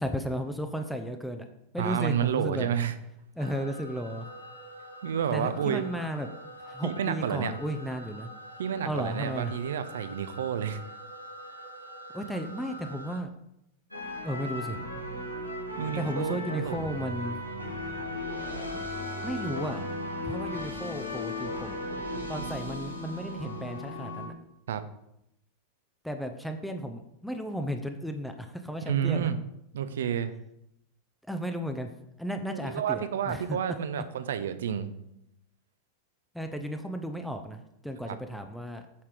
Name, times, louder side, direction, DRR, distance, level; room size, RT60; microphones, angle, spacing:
voice 1, 0.0-1.5 1.7-2.7 3.4-4.3 5.3-6.3 6.6-8.3 8.8-9.5 12.1-13.3 14.2-14.8 15.9-17.4 19.2-19.8 20.2-21.9 22.3-24.3 26.0-29.3 31.3-31.9 32.2-33.8 36.3-38.8, equal, ahead, 5 dB, 0.7 m, -34 dB
voice 2, 1.8-2.9 5.0-5.9 6.8-7.5 8.6-10.8 15.8-17.0 24.7-24.8 28.9-29.4 29.7-30.3 32.5-34.9 38.0-38.2, right 8 dB, 60° right, 12 dB, 0.7 m, -30 dB
sound 1, 3.4-13.2, right 1 dB, 85° right, 1.1 m, -45 dB
sound 2, 13.9-24.3, left 1 dB, 90° left, 1.8 m, -36 dB
8.5 x 5.8 x 4.9 m, 0.81 s
figure-of-eight pair, 90°, 0 cm